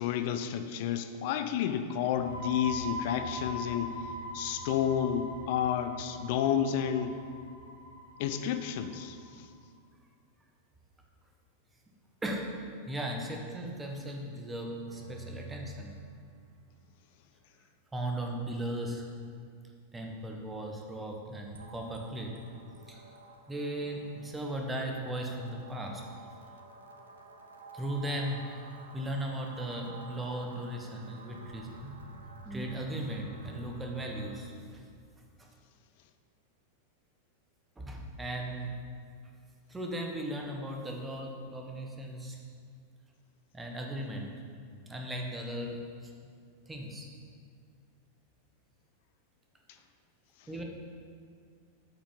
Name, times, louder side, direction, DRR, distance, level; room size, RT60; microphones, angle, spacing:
voice 1, 0.0-3.9 4.3-7.1 8.2-9.5, left 9 dB, 50° left, 8 dB, 0.5 m, -31 dB
sound 1, 2.0-9.4, equal, 90° right, 1.7 m, -42 dB
voice 2, 12.2-12.6 12.9-16.0 17.9-19.0 19.9-22.3 22.9-23.1 23.5-26.0 27.7-32.0 32.4-34.8 35.4-35.5 37.8-38.7 39.7-42.4 43.5-44.3 44.8-46.1 46.7-47.1 50.5-50.6, right 1 dB, 10° right, 1 dB, 1.1 m, -37 dB
sound 2, 14.9-16.6 20.5-34.4, right 4 dB, 70° right, 0.7 m, -50 dB
8.6 x 5.3 x 5.2 m, 2.2 s
figure-of-eight pair, 90°, 0 cm